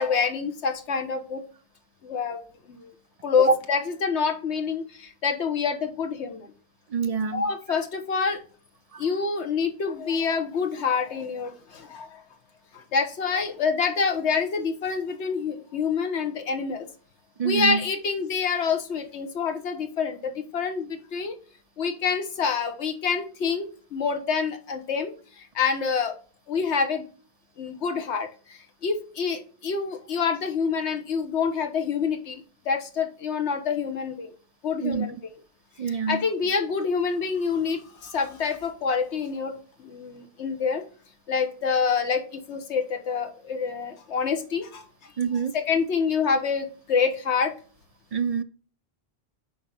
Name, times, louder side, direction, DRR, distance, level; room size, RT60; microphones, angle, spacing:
voice 1, 0.0-1.4 2.0-2.4 2.7-2.9 3.2-6.5 7.3-8.4 9.0-12.1 12.7-16.9 17.4-21.4 21.8-26.2 26.5-27.0 27.6-34.3 34.6-35.3 35.8-39.5 39.8-40.8 41.3-44.8 45.5-47.5, left 5 dB, 85° left, 1.3 m, -27 dB
voice 2, 6.9-7.5 8.9-9.0 17.4-17.8 34.8-35.1 35.8-36.2 45.2-45.5 48.1-48.4, right 5 dB, 60° right, 0.4 m, -25 dB
9.5 x 4.1 x 4.1 m
omnidirectional pair, 1.1 m